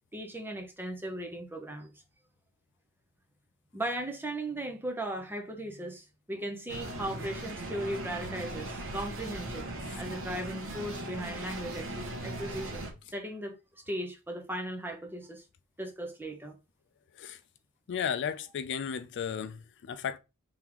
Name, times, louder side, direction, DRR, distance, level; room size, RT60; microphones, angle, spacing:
voice 1, 0.1-1.9 3.7-15.4 15.8-16.6, right 1 dB, 10° right, 0.7 m, -37 dB
sound 1, 6.7-12.9, right 1 dB, 60° right, 1.0 m, -39 dB
voice 2, 17.9-20.2, left 7 dB, 55° left, 0.4 m, -34 dB
3.7 x 3.5 x 3.0 m
head